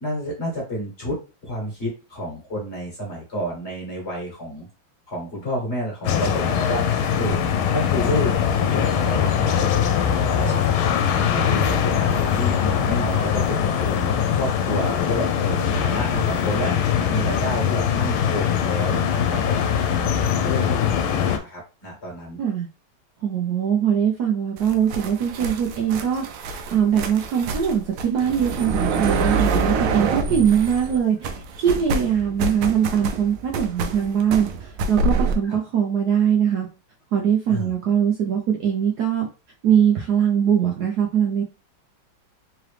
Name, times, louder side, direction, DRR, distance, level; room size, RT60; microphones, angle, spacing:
voice 1, 0.0-4.7 5.1-7.4 7.7-19.7 20.3-22.4 30.3-30.5 35.4-35.6 37.5-37.7, equal, 35° left, -2 dB, 1.5 m, -30 dB
sound 1, 6.0-21.4, left 8 dB, 85° left, 1.4 m, -22 dB
voice 2, 23.2-36.7 37.1-39.3 39.6-41.4, right 8 dB, 65° right, 0 dB, 1.1 m, -22 dB
sound 2, 24.6-31.0 31.2-35.4, right 4 dB, 80° right, 1.4 m, -26 dB
3.8 x 3.0 x 3.3 m, 0.32 s
omnidirectional pair, 2.3 m